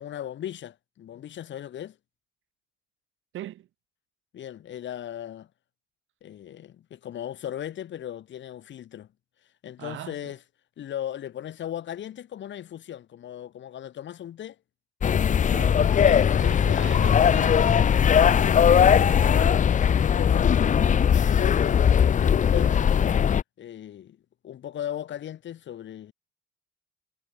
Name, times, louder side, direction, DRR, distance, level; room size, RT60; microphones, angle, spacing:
voice 1, 0.0-2.0 4.3-5.5 6.2-9.1 9.6-10.4 10.8-14.6 15.9-16.9 18.0-20.6 21.1-22.9 23.6-24.2 24.4-26.1, left 10 dB, 65° left, 3.1 m, -37 dB
voice 2, 3.3-3.7 9.8-10.3 15.5-15.9 16.4-17.9, right 13 dB, 80° right, 7.0 m, -40 dB
sound 1, 15.0-23.4, left 8 dB, 40° left, 0.6 m, -20 dB
cardioid pair, 90°, 20 cm